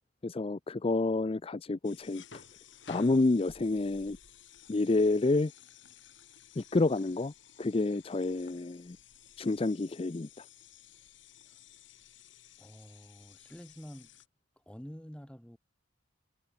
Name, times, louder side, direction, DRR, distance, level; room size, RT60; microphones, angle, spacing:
voice 1, 0.2-2.4 2.9-4.2 4.7-5.5 6.6-7.3 7.6-9.0 9.4-10.4, left 2 dB, 30° left, 0.5 m, -29 dB
sound 1, 1.8-14.3, left 7 dB, 70° left, 3.1 m, -55 dB
voice 2, 12.6-14.1 14.6-15.6, equal, 5° left, 1.9 m, -48 dB
head